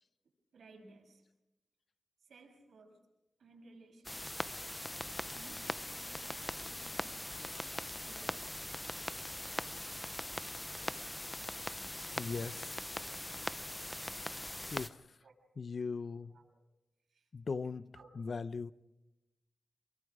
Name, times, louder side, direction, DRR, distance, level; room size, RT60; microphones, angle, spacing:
voice 1, 0.5-1.2 2.3-3.0 3.4-4.6 5.3-7.7 8.0-8.8 15.2-15.4 16.1-16.6 17.1-17.2 17.9-18.1, right 3 dB, 80° right, 6.5 m, -59 dB
sound 1, 4.0-14.9, left 1 dB, 10° left, 0.8 m, -41 dB
voice 2, 12.2-12.7 14.7-14.9 15.6-16.3 17.3-17.9 18.2-18.7, left 4 dB, 55° left, 0.7 m, -38 dB
27.0 x 23.5 x 5.0 m
wide cardioid pair, 90°, 0 cm